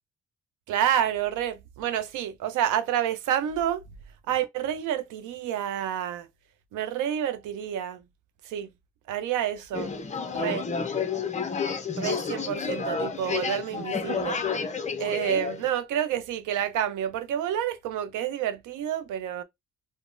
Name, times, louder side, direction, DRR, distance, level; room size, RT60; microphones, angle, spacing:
voice 1, 0.7-3.8 4.3-6.3 6.7-8.0 8.4-8.7 9.1-9.9 10.3-10.7 11.9-14.4 15.0-19.4, right 10 dB, 80° right, 0.6 m, -29 dB
sound 1, 9.7-15.7, left 5 dB, 25° left, 0.5 m, -30 dB
3.7 x 2.0 x 2.4 m
cardioid pair, 90°, 30 cm